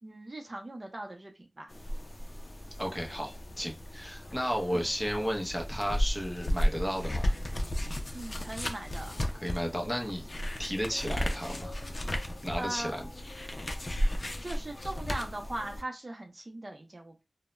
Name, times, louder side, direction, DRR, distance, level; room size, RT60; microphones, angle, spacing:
voice 1, 0.0-1.7 4.7-4.9 8.1-9.2 12.6-12.9 14.4-17.1, right 1 dB, 45° right, 0.6 m, -39 dB
sound 1, 1.7-15.8, equal, 50° left, 0.4 m, -34 dB
voice 2, 2.8-7.3 9.4-10.2 10.6-11.8 12.4-13.1, equal, 10° left, 0.7 m, -33 dB
2.2 x 2.0 x 3.0 m
wide cardioid pair, 55°, 0 cm